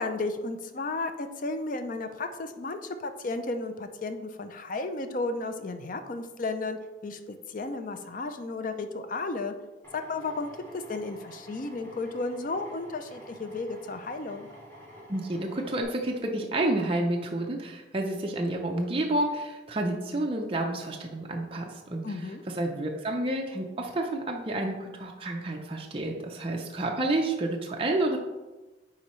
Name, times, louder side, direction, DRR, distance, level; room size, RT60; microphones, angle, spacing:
voice 1, 0.0-9.5 9.9-14.5 22.0-22.4, left 3 dB, 45° left, 8 dB, 0.4 m, -33 dB
Drill, 9.8-15.8, equal, 10° left, 1.5 m, -49 dB
voice 2, 15.1-28.2, right 1 dB, 30° right, 1 dB, 0.5 m, -30 dB
9.6 x 3.8 x 3.1 m, 1.1 s
head